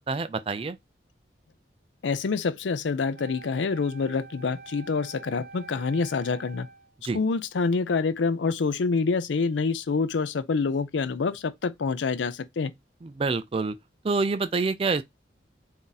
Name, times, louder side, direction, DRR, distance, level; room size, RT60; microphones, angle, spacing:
voice 1, 0.1-0.8 7.0-7.2 13.0-13.7 14.0-15.0, right 4 dB, 30° right, 0.3 m, -27 dB
voice 2, 2.0-6.7 7.1-12.7, left 4 dB, 85° left, 0.5 m, -26 dB
Wind instrument woodwind instrument, 3.1-6.9, right 4 dB, 55° right, 0.8 m, -47 dB
3.6 x 2.7 x 3.9 m
head